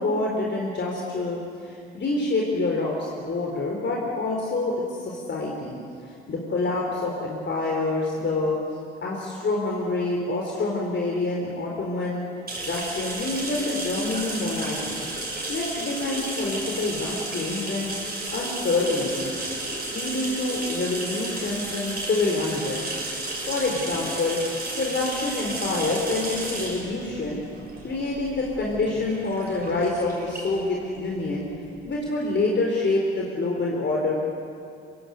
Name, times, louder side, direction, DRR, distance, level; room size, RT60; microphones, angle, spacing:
voice 1, 0.0-4.7 5.0-5.7 6.3-8.6 9.0-12.2 12.6-15.0 15.5-17.9 18.3-19.3 19.9-22.8 23.5-24.4 24.8-27.4 27.8-31.5 31.8-34.2, left 2 dB, 35° left, -2 dB, 4.2 m, -27 dB
sound 1, 12.5-31.9, right 2 dB, 30° right, 7.4 m, -33 dB
25.5 x 16.5 x 8.1 m, 2.4 s
figure-of-eight pair, 50°, 32 cm